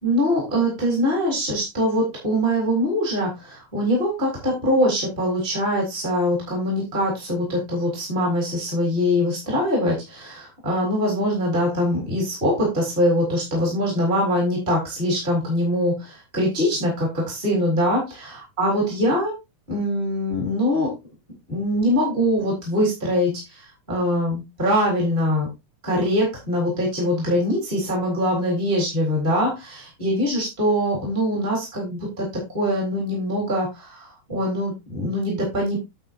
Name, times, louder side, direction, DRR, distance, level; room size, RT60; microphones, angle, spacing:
voice 1, 0.0-19.3 19.7-20.9 21.5-25.5 25.8-29.7 30.0-32.3 32.5-35.8, equal, 15° right, -3 dB, 3.9 m, -23 dB
9.7 x 8.2 x 2.7 m, 0.23 s
omnidirectional pair, 3.8 m